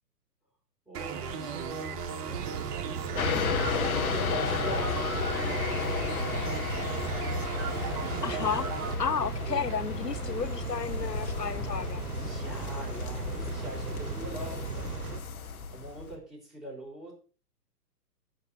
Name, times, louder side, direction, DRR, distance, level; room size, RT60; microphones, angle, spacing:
voice 1, 0.9-2.0 3.1-6.3 12.1-15.0 15.4-17.1, right 1 dB, ahead, 5.4 m, -43 dB
sound 1, 0.9-8.9, right 6 dB, 25° right, 1.0 m, -36 dB
sound 2, 2.3-15.2, right 7 dB, 70° right, 0.7 m, -38 dB
sound 3, 3.1-16.2, left 5 dB, 60° left, 1.7 m, -33 dB
voice 2, 8.2-8.7 9.0-12.0, left 6 dB, 85° left, 0.9 m, -32 dB
10.5 x 7.4 x 6.8 m
figure-of-eight pair, 120°, 48 cm